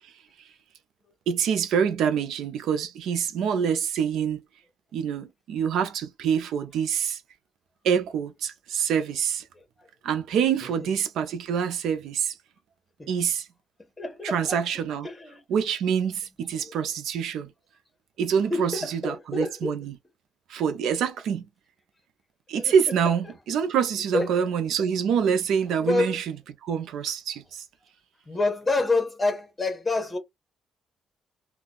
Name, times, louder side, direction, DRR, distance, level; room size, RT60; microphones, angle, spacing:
voice 1, 1.3-4.4 4.9-7.2 7.8-9.4 10.0-12.3 13.1-13.5 14.2-15.1 15.5-17.5 18.2-19.9 20.5-21.5 22.5-26.2 26.6-27.6, right 7 dB, 80° right, 0.6 m, -26 dB
voice 2, 9.5-9.9 10.8-10.9 13.0-13.1 14.0-14.6 15.0-15.4 16.6-16.7 18.5-19.8 22.5-23.3 24.1-24.5 24.8-24.9 25.8-26.2 28.3-30.2, left 2 dB, 20° left, 1.2 m, -28 dB
2.5 x 2.3 x 3.8 m
cardioid pair, 90°, 0 cm